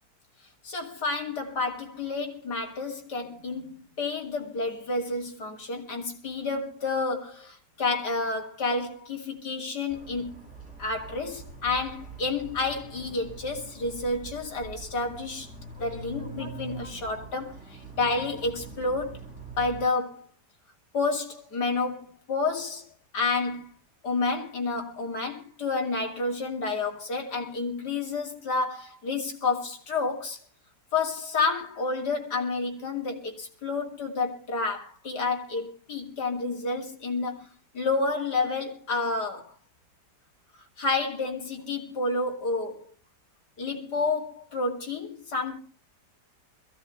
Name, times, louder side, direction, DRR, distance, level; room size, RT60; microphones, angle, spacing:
voice 1, 0.6-10.4 10.8-15.5 15.8-19.2 19.6-20.3 20.9-22.9 23.1-23.7 24.0-30.4 30.9-37.5 37.7-39.5 40.8-42.8 43.6-45.6, left 3 dB, 70° left, 3.2 m, -30 dB
sound 1, 9.9-19.9, right 4 dB, 40° right, 6.9 m, -43 dB
22.0 x 15.5 x 3.2 m
omnidirectional pair, 1.9 m